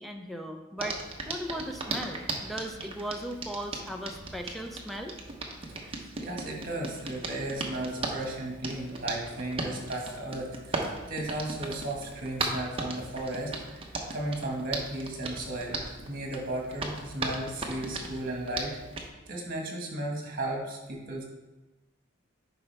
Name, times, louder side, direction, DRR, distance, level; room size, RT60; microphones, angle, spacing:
voice 1, 0.0-5.1, equal, ahead, 3 dB, 0.7 m, -37 dB
Hands, 0.8-19.1, right 2 dB, 30° right, 0.9 m, -37 dB
voice 2, 5.7-13.8 14.1-18.8 19.3-21.2, right 1 dB, 45° right, -1 dB, 1.7 m, -35 dB
9.7 x 5.4 x 3.4 m, 1.1 s
head